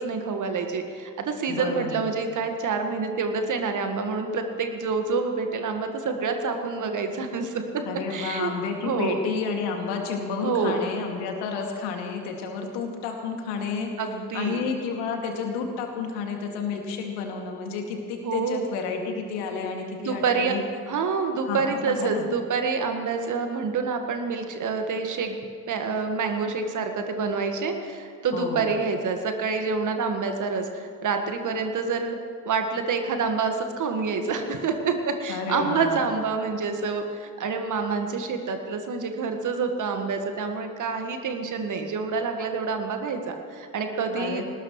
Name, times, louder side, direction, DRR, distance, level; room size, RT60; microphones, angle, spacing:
voice 1, 0.0-7.8 8.1-8.5 8.8-9.2 10.4-10.8 14.0-14.7 18.2-18.7 20.0-20.5 20.9-25.4 25.7-32.2 32.5-44.4, right 4 dB, 40° right, 5 dB, 1.8 m, -27 dB
voice 2, 1.5-2.0 7.8-13.9 14.3-20.6 21.4-22.3 28.3-28.7 35.3-36.0 44.1-44.4, left 5 dB, 60° left, 2 dB, 2.5 m, -31 dB
21.0 x 19.5 x 3.3 m, 2.1 s
figure-of-eight pair, 55°, 46 cm